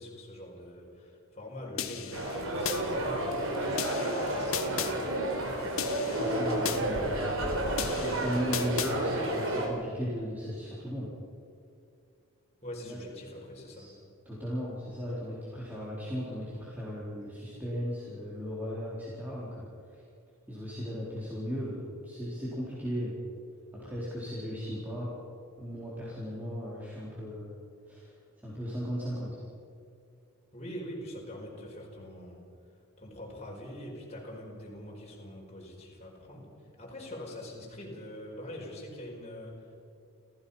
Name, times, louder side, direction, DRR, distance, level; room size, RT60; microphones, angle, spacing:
voice 1, 0.0-5.8 12.6-13.9 30.5-32.5 33.0-36.5 36.8-39.7, left 1 dB, 30° left, -2 dB, 4.9 m, -44 dB
sound 1, 1.8-2.8 3.8-4.9 5.8-6.8 7.8-8.9, left 8 dB, 70° left, 1.4 m, -35 dB
sound 2, 2.1-9.7, right 1 dB, 65° right, 4.1 m, -31 dB
voice 2, 6.2-7.5 8.0-11.1 12.8-13.0 13.7-13.9 14.3-20.0 20.5-23.2 23.7-25.1 25.6-27.5 27.9-28.2 28.4-29.4, equal, 10° right, -8 dB, 3.9 m, -36 dB
29.5 x 15.5 x 5.7 m, 2.5 s
head